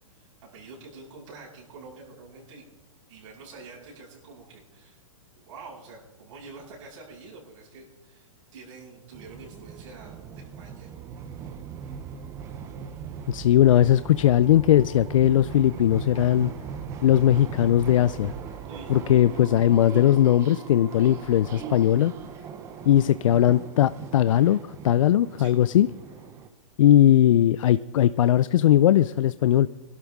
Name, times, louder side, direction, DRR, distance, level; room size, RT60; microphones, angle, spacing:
voice 1, 0.1-2.6 3.1-5.0 5.3-10.9 18.7-19.0 25.4-25.5, right 3 dB, 65° right, -5 dB, 6.7 m, -46 dB
sound 1, 9.1-26.5, right 7 dB, 15° right, 0.5 m, -39 dB
voice 2, 13.3-16.5 17.0-18.3 18.9-22.1 22.9-25.9 26.8-29.7, left 11 dB, 75° left, 15 dB, 0.4 m, -19 dB
23.0 x 12.0 x 3.6 m, 1.1 s
hypercardioid pair, 165°, 17 cm